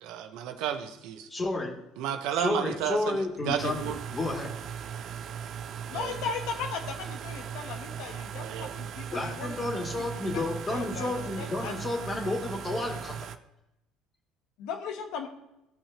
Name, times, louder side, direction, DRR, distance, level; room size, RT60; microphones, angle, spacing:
voice 1, 0.0-1.3 2.0-4.0 5.9-6.1 8.4-8.7, right 9 dB, 70° right, 7 dB, 0.9 m, -32 dB
voice 2, 1.3-1.8 2.3-4.5 9.1-13.1, left 2 dB, 25° left, 0 dB, 2.6 m, -31 dB
sound 1, 3.6-13.4, right 8 dB, 55° right, 0.6 m, -38 dB
voice 3, 5.9-11.8 14.6-15.3, left 6 dB, 70° left, 4 dB, 1.2 m, -38 dB
16.0 x 5.7 x 3.0 m, 0.90 s
hypercardioid pair, 75°, 0 cm